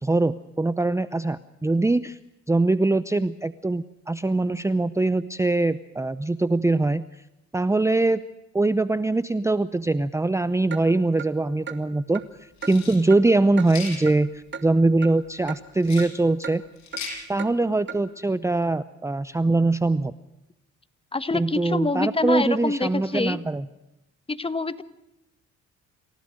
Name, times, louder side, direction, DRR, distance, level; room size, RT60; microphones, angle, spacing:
voice 1, 0.0-2.2 2.5-7.0 7.5-8.2 8.5-12.2 12.7-16.6 17.3-20.1 21.3-23.7, right 2 dB, 10° right, 14 dB, 0.7 m, -22 dB
Clock, 10.7-10.8 11.2-11.3 11.7-11.8 12.1-12.3 12.6-12.7 13.1-13.2 13.6-13.7 14.1-14.2 14.5-14.7 15.0-15.1 15.5-15.6 16.0-16.1 16.4-16.6 16.9-17.0 17.4-17.5 17.9-18.0, right 7 dB, 40° right, 2.3 m, -35 dB
sound 1, 12.6-13.0 13.6-14.0 15.8-16.1 16.8-17.2, left 5 dB, 65° left, 7.3 m, -36 dB
voice 2, 21.1-23.4 24.3-24.8, left 3 dB, 20° left, 13 dB, 1.4 m, -26 dB
27.5 x 16.5 x 6.4 m, 0.89 s
cardioid pair, 90°, 30 cm